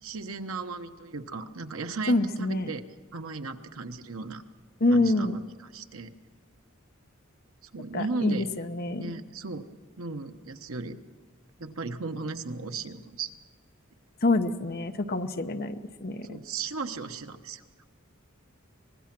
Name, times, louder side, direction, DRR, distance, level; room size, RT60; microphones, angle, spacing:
voice 1, 0.0-2.8 3.1-4.4 4.9-5.4 5.7-6.1 7.6-8.5 8.9-9.7 10.0-11.0 11.6-13.3 16.3-17.6, right 4 dB, 80° right, 8 dB, 1.1 m, -36 dB
voice 2, 2.1-2.7 4.8-5.4 7.9-9.1 14.2-16.4, left 2 dB, 45° left, 8 dB, 0.9 m, -26 dB
24.5 x 20.0 x 6.1 m, 1.5 s
head